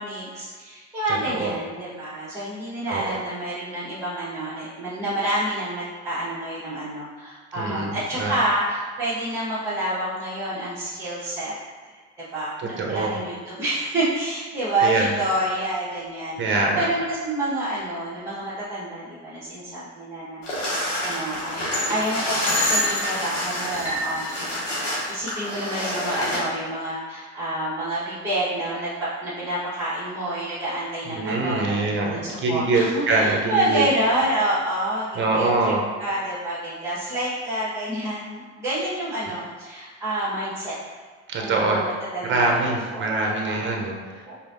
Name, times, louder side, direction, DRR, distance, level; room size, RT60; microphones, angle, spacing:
voice 1, 0.0-11.5 12.2-20.8 21.0-24.5 25.1-35.1 35.3-35.7 36.0-40.7 41.4-42.6 42.9-43.1 43.4-43.8 44.2-44.4, right 1 dB, 10° right, -10 dB, 1.3 m, -28 dB
voice 2, 1.1-1.5 2.9-3.2 7.5-8.3 12.6-13.2 14.8-15.1 16.4-16.9 31.0-33.9 35.1-35.8 41.3-41.8 42.3-44.3, right 3 dB, 30° right, 0 dB, 0.9 m, -24 dB
sound 1, 20.4-26.4, left 1 dB, 85° left, 1.3 m, -26 dB
4.7 x 2.8 x 2.7 m, 1.5 s
hypercardioid pair, 70°, 36 cm